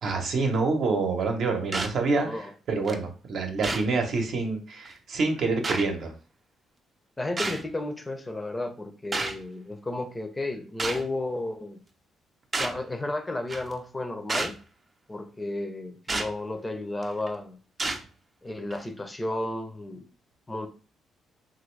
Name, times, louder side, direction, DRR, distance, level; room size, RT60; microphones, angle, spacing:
voice 1, 0.0-6.1, right 3 dB, 65° right, 0.8 m, -27 dB
sound 1, 1.7-2.0 2.9-3.0 3.6-3.9 4.9-5.0 5.6-5.9 7.4-7.6 9.1-9.4 10.8-11.1 12.5-12.8 13.5-13.7 14.3-14.6 16.1-16.3 17.0-17.3 17.8-18.0 18.7-18.8, right 3 dB, 30° right, 0.5 m, -30 dB
voice 2, 7.2-11.8 12.6-14.6 15.1-17.6 18.4-20.1 20.5-20.7, left 2 dB, 15° left, 0.5 m, -33 dB
3.0 x 2.5 x 3.1 m
cardioid pair, 90°, 0 cm